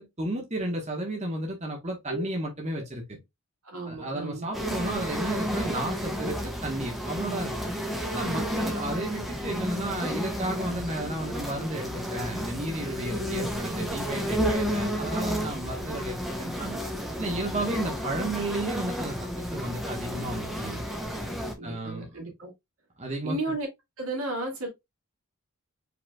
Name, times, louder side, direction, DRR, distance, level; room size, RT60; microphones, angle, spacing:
voice 1, 0.0-3.2 3.9-7.7 8.1-16.8 17.2-19.2 19.5-20.8 21.6-22.1 23.0-23.3, right 1 dB, 30° right, 1.2 m, -33 dB
voice 2, 3.6-4.5 8.2-8.7 13.0-13.6 21.6-22.5 23.2-23.7 24.0-24.7, right 2 dB, 70° right, 2.3 m, -34 dB
sound 1, 4.5-21.5, equal, ahead, 0.9 m, -31 dB
5.0 x 4.2 x 2.3 m
head